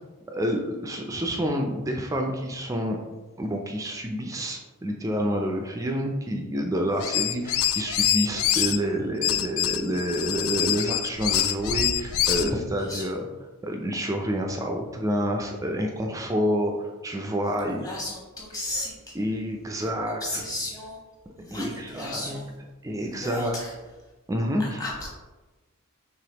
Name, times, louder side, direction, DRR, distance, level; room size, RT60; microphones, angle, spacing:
voice 1, 0.3-3.0 3.4-13.2 13.6-16.7 17.0-17.8 19.2-20.4 21.5-22.4 22.8-23.6 24.3-24.8, equal, 15° right, 2 dB, 0.4 m, -28 dB
sound 1, 7.0-8.8 9.2-12.5, left 11 dB, 70° left, 0.3 m, -25 dB
voice 2, 12.8-13.2 17.7-19.1 19.7-19.9 20.2-21.0 21.4-22.5 23.0-23.7 24.6-25.1, left 1 dB, 15° left, -4 dB, 1.1 m, -35 dB
5.0 x 3.4 x 2.9 m, 1.2 s
head